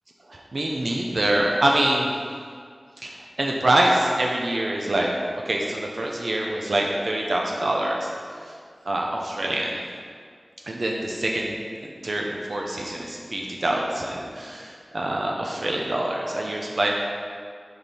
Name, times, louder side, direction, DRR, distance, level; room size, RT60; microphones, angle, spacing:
voice 1, 0.3-2.1 3.0-5.1 5.4-8.1 8.5-8.6 8.8-9.8 10.7-11.6 11.8-16.9, right 1 dB, 70° right, -1 dB, 0.6 m, -25 dB
6.5 x 4.6 x 4.2 m, 2.1 s
wide cardioid pair, 65°, 0 cm